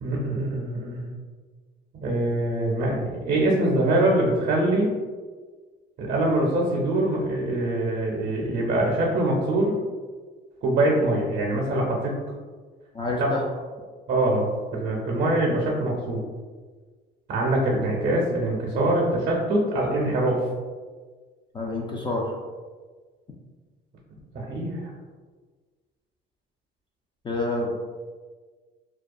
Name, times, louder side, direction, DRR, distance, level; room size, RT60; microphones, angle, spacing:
voice 1, 0.0-1.1 1.9-4.9 6.0-9.7 10.6-12.1 13.2-13.3 14.1-16.2 17.3-20.4 24.3-24.9, right 1 dB, 50° right, -2 dB, 0.6 m, -24 dB
voice 2, 12.9-13.4 21.5-22.3 27.2-27.7, left 2 dB, 25° left, -1 dB, 0.4 m, -27 dB
2.3 x 2.2 x 2.6 m, 1.4 s
cardioid pair, 90°, 20 cm